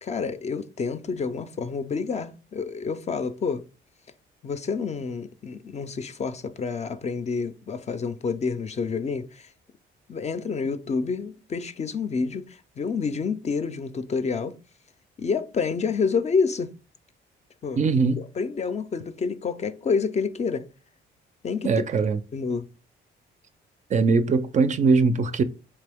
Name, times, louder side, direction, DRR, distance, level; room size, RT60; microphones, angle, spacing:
voice 1, 0.0-3.6 4.4-9.5 10.1-14.5 15.2-16.7 17.6-17.8 18.4-20.7 21.4-21.7 22.3-22.7, left 5 dB, 35° left, 0.4 m, -28 dB
voice 2, 17.8-18.2 21.6-22.2 23.9-25.4, right 4 dB, 40° right, 0.4 m, -21 dB
3.6 x 2.9 x 3.4 m
cardioid pair, 90°, 20 cm